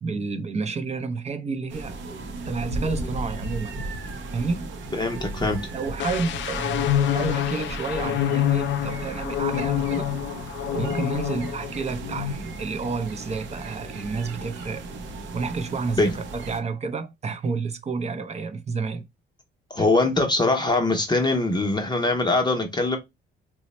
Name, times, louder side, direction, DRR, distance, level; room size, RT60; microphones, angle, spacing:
voice 1, 0.0-2.0 2.4-3.7 4.3-4.7 5.7-10.1 10.7-14.8 15.3-19.0 19.8-19.9, right 4 dB, 35° right, 0.5 m, -30 dB
sound 1, 1.7-16.6, right 2 dB, 70° right, 0.6 m, -36 dB
voice 2, 4.9-5.6 16.0-16.1 19.7-23.0, left 2 dB, 20° left, 0.7 m, -22 dB
sound 2, 6.0-11.7 12.0-12.3, left 11 dB, 70° left, 0.4 m, -26 dB
3.0 x 2.0 x 4.1 m
cardioid pair, 90°, 20 cm